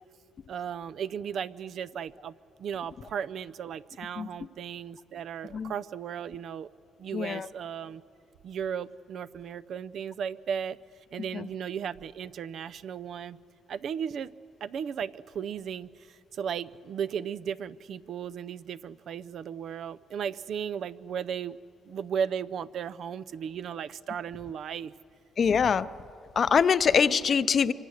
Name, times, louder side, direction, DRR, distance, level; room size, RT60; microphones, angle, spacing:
voice 1, 0.5-6.7 7.0-8.0 8.4-10.8 11.1-13.4 13.7-14.3 14.6-21.6 21.9-24.9, right 8 dB, 65° right, 16 dB, 0.5 m, -35 dB
voice 2, 7.1-7.5 11.3-11.5 25.4-25.9 26.4-27.7, left 6 dB, 50° left, 14 dB, 0.6 m, -24 dB
25.5 x 25.0 x 6.5 m, 2.6 s
cardioid pair, 90°, 0 cm